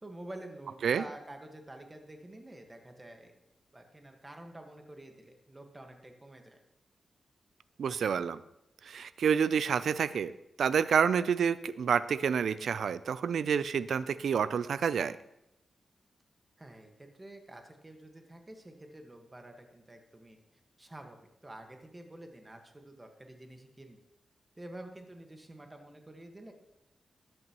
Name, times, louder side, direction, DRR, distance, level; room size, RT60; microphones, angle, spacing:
voice 1, 0.0-3.3 3.7-6.6 16.6-20.4 20.8-24.0 24.6-26.5, right 1 dB, 20° right, 4 dB, 1.5 m, -49 dB
voice 2, 7.8-8.4 8.9-10.3 10.6-15.2, right 7 dB, 85° right, 15 dB, 0.4 m, -28 dB
13.5 x 10.5 x 3.0 m, 0.85 s
wide cardioid pair, 95°, 0 cm